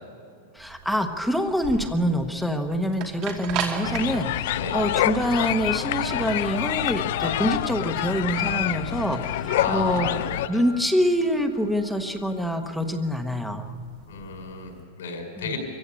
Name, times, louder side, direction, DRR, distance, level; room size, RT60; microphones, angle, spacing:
voice 1, 0.5-10.1 10.5-13.7 15.4-15.6, equal, ahead, 5 dB, 1.0 m, -26 dB
sound 1, 0.6-14.7, right 6 dB, 35° right, 2.5 m, -39 dB
sound 2, 3.8-10.5, left 13 dB, 55° left, 0.5 m, -27 dB
voice 2, 9.6-10.2 10.5-10.6 14.1-15.6, left 4 dB, 85° left, 3 dB, 5.8 m, -32 dB
23.0 x 15.0 x 8.6 m, 2.4 s
supercardioid pair, 165°, 0 cm